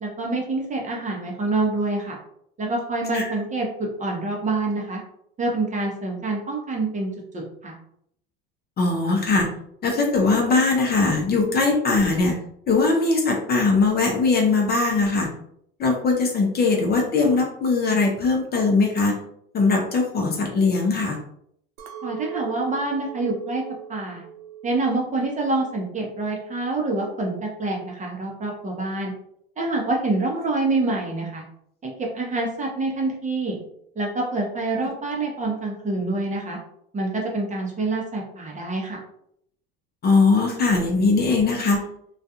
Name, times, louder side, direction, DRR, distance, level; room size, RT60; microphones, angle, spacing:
voice 1, 0.0-2.2 2.6-5.0 5.4-7.8 22.0-23.6 23.9-24.2 24.6-29.1 29.6-31.4 31.8-33.6 34.0-36.6 36.9-39.0, right 2 dB, 25° right, -1 dB, 0.7 m, -26 dB
voice 2, 8.8-9.5 9.8-12.3 12.7-15.3 15.8-19.2 19.5-21.2 40.0-41.8, left 3 dB, 30° left, 1 dB, 0.6 m, -20 dB
Chink clink, 21.8-26.2 26.5-27.1, right 10 dB, 85° right, 0.5 m, -40 dB
2.3 x 2.3 x 2.7 m, 0.69 s
supercardioid pair, 100°, 30 cm